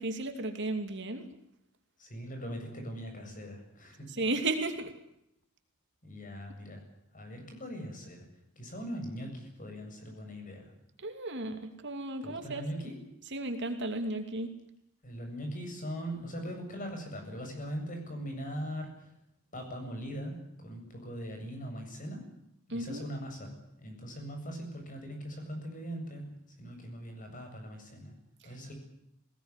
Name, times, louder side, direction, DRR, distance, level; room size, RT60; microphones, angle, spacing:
voice 1, 0.0-1.3 4.1-4.9 11.0-12.6 13.3-14.5 22.7-23.1 28.4-28.5, right 2 dB, 50° right, 6 dB, 2.7 m, -34 dB
voice 2, 2.0-4.1 6.0-6.8 7.1-8.3 8.6-10.6 12.2-13.0 15.0-19.2 19.5-22.2 22.7-26.3 26.6-28.2 28.4-28.7, equal, 35° left, 4 dB, 7.8 m, -40 dB
21.0 x 18.5 x 9.9 m, 0.80 s
head